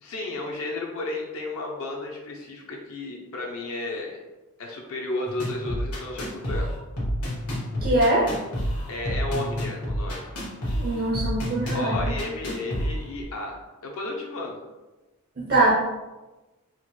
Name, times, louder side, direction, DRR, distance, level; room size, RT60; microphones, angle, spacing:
voice 1, 0.0-4.2 4.6-6.7 8.9-10.3 11.7-13.6 13.8-14.6, left 2 dB, 65° left, -1 dB, 0.5 m, -33 dB
sound 1, 5.3-13.2, equal, 85° left, 1.3 m, -29 dB
voice 2, 7.8-8.3 10.7-12.2 15.4-15.7, right 2 dB, 45° right, -5 dB, 0.5 m, -23 dB
4.3 x 2.1 x 3.0 m, 1.1 s
head